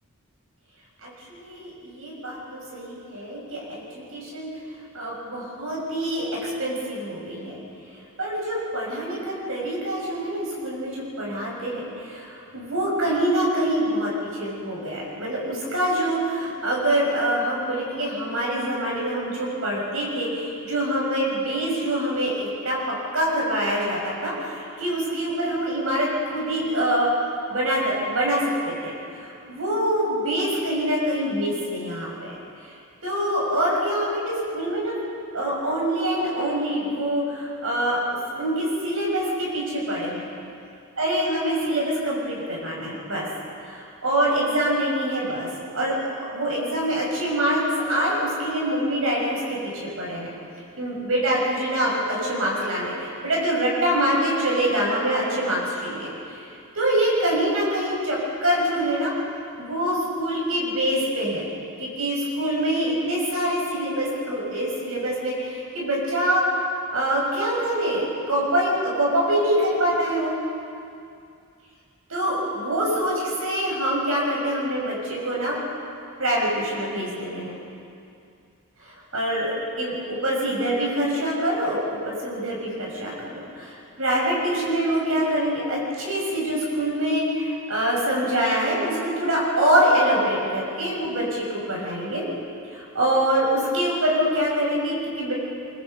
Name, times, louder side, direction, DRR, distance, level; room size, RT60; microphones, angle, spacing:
voice 1, 1.0-4.5 4.9-7.6 8.2-27.1 27.5-32.4 33.0-34.9 35.3-38.0 38.4-40.3 41.0-43.3 43.7-45.5 45.7-50.3 50.8-56.5 56.7-59.1 59.6-61.5 61.8-66.4 66.9-70.4 72.1-75.6 76.2-77.5 78.8-83.7 84.0-92.2 92.7-95.3, right 1 dB, 65° right, -4 dB, 6.6 m, -25 dB
24.0 x 24.0 x 5.4 m, 2.4 s
head